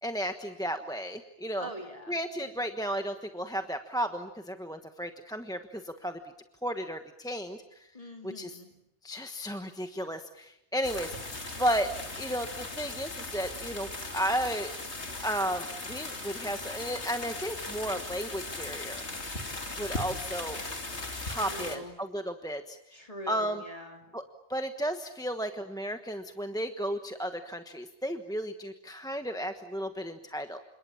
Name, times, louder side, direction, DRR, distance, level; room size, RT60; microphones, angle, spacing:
voice 1, 0.0-1.7 2.1-6.2 6.6-7.9 8.2-8.6 9.0-11.2 11.6-14.7 15.2-19.0 19.8-20.6 21.2-22.8 23.3-23.6 24.1-24.2 24.5-30.6, equal, 5° left, 6 dB, 1.2 m, -33 dB
voice 2, 1.6-2.5 7.9-8.7 21.3-21.9 22.9-24.0, equal, 30° left, 3 dB, 2.9 m, -43 dB
sound 1, 10.8-21.8, left 2 dB, 75° left, 3.2 m, -38 dB
29.5 x 27.0 x 7.2 m, 0.83 s
omnidirectional pair, 1.1 m